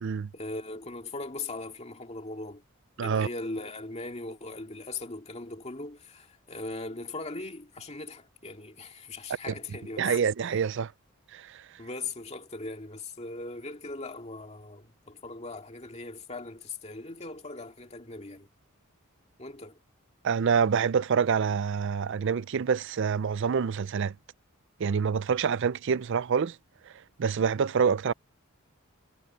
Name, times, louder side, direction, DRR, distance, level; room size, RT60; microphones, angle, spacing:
voice 1, 0.3-2.6 3.0-10.1 11.8-18.5 19.4-19.8, left 2 dB, 30° left, 2.2 m, -39 dB
voice 2, 10.0-10.9 11.3-11.6 20.2-24.1 24.8-26.6 27.2-28.1, right 6 dB, 60° right, 0.4 m, -26 dB
head